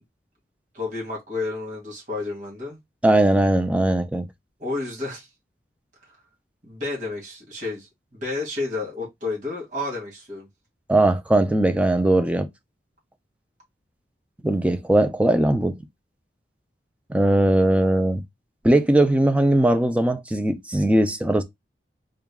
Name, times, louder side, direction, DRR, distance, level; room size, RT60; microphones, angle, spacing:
voice 1, 0.7-2.8 4.6-5.3 6.6-10.5, left 3 dB, 45° right, 2.0 m, -31 dB
voice 2, 3.0-4.3 10.9-12.5 14.4-15.8 17.1-18.2 18.6-21.4, right 1 dB, 5° right, 0.4 m, -19 dB
3.9 x 2.3 x 3.5 m
head